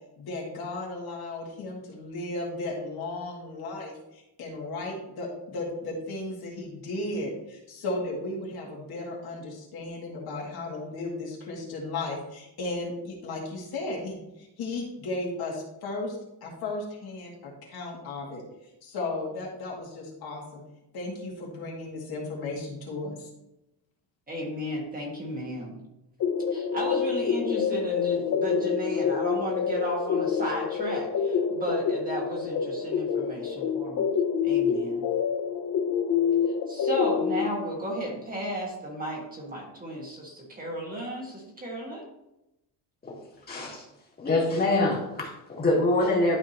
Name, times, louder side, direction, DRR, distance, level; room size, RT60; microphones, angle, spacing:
voice 1, 0.2-18.4 18.8-20.6 20.9-23.3, left 2 dB, 60° left, -2 dB, 2.3 m, -35 dB
voice 2, 24.3-25.8 26.5-34.1 34.4-35.0 36.7-42.0, right 1 dB, 20° right, -2 dB, 1.6 m, -34 dB
sound 1, 26.2-37.5, left 7 dB, 45° left, 0.6 m, -27 dB
voice 3, 43.5-43.8 44.2-46.4, left 2 dB, 20° left, -3 dB, 2.2 m, -24 dB
12.0 x 4.9 x 2.9 m, 0.89 s
cardioid pair, 175°, 43 cm